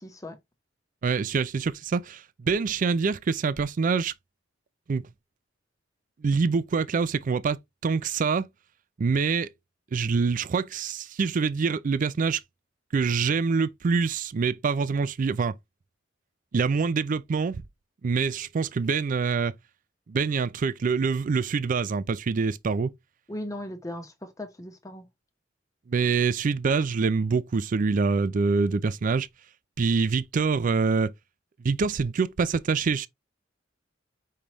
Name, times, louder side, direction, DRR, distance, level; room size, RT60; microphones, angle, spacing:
voice 1, 0.0-0.4 23.3-25.1, left 1 dB, 20° left, 1.0 m, -37 dB
voice 2, 1.0-4.1 4.9-5.1 6.2-7.6 7.8-8.5 9.0-9.5 9.9-12.4 12.9-15.5 16.5-17.6 18.0-19.5 20.1-22.9 25.9-29.3 29.8-31.1 31.6-33.1, right 5 dB, 45° right, 0.4 m, -25 dB
5.2 x 3.3 x 2.9 m
head